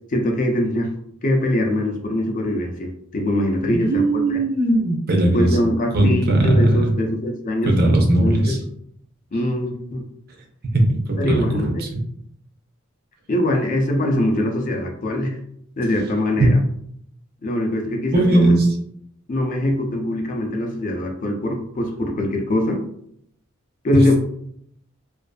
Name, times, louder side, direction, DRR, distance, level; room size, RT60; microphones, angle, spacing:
voice 1, 0.1-0.9 1.2-4.4 5.3-7.8 8.2-8.6 9.3-10.0 11.2-11.9 13.3-15.4 15.8-16.6 17.4-18.5 19.3-22.8 23.8-24.1, left 1 dB, 40° left, 2 dB, 0.4 m, -22 dB
voice 2, 3.6-5.5 5.9-6.9 7.7-8.6 10.6-11.6 11.9-12.0 16.4-16.5 18.1-18.7, right 1 dB, 50° right, 1 dB, 0.5 m, -18 dB
2.5 x 2.4 x 2.2 m, 0.68 s
head